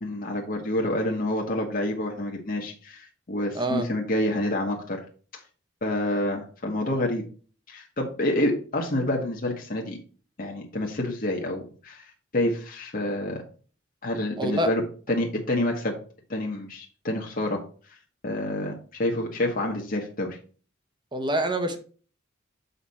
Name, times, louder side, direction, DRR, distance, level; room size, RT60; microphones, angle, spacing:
voice 1, 0.0-5.0 5.3-5.4 5.8-7.2 7.7-10.0 10.4-13.4 14.0-14.8 15.1-15.9 16.3-17.6 18.2-20.4, left 1 dB, 45° left, 1.2 m, -28 dB
voice 2, 3.5-3.9 14.4-14.7 21.1-21.8, right 1 dB, 25° right, 1.1 m, -26 dB
6.9 x 5.0 x 4.2 m
head